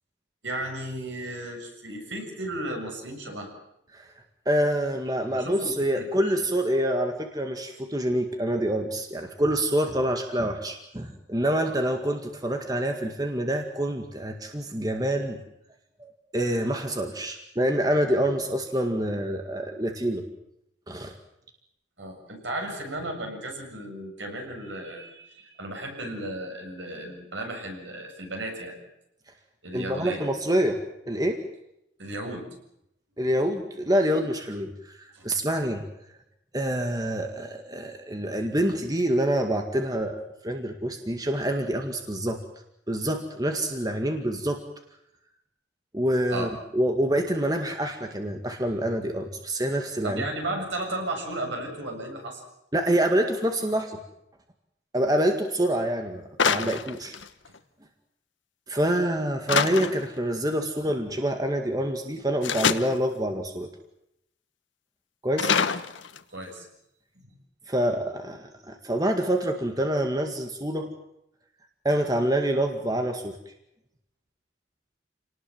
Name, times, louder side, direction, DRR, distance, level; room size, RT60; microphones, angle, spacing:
voice 1, 0.4-3.5 5.3-6.3 22.0-28.7 29.6-30.3 32.0-32.5 35.1-35.3 46.3-46.5 50.0-52.4 66.3-66.7 67.2-67.3, right 1 dB, 75° right, 2 dB, 7.4 m, -34 dB
voice 2, 4.5-15.4 16.0-20.2 20.9-21.1 29.7-30.8 31.1-31.4 33.2-35.8 36.5-42.4 42.9-44.6 45.9-50.2 52.7-54.0 54.9-57.2 58.7-63.7 65.2-65.6 67.7-70.9 71.8-73.4, right 1 dB, 20° right, 4 dB, 1.9 m, -26 dB
sound 1, 56.4-57.6 59.5-60.2 62.4-63.0 65.4-66.4, left 6 dB, 80° left, 1.2 m, -25 dB
28.0 x 19.0 x 7.7 m, 0.80 s
head